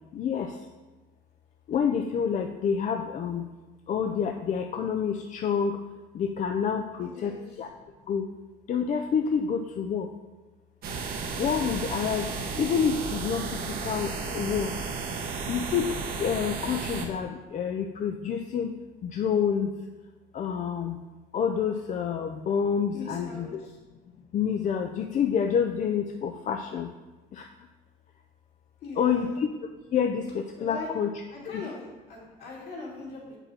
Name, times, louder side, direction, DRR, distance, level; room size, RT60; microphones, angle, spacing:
voice 1, 0.1-0.6 1.7-3.5 3.9-5.8 6.1-7.7 8.1-8.3 8.7-10.1 11.4-12.3 12.6-14.7 15.5-18.7 19.0-19.7 20.3-21.0 21.3-23.6 24.3-26.9 27.3-27.5 29.0-29.5 29.9-31.7, left 7 dB, 45° left, 4 dB, 0.5 m, -28 dB
voice 2, 7.0-7.4 22.9-23.7 28.8-29.4 30.6-30.9 31.3-33.4, left 3 dB, 70° left, -4 dB, 2.6 m, -41 dB
sound 1, 10.8-17.1, right 4 dB, 65° right, 1.1 m, -33 dB
7.3 x 5.4 x 4.2 m, 1.2 s
cardioid pair, 110°, 17 cm